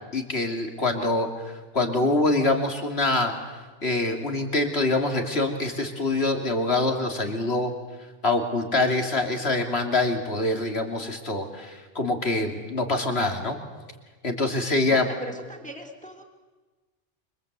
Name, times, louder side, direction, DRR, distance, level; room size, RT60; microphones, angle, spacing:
voice 1, 0.1-1.3 1.7-3.3 3.8-7.7 8.2-13.6 14.2-15.1, left 2 dB, 60° left, 5 dB, 3.2 m, -25 dB
voice 2, 14.9-16.2, right 1 dB, 5° left, 1 dB, 3.2 m, -39 dB
28.0 x 25.5 x 8.3 m, 1.3 s
omnidirectional pair, 1.2 m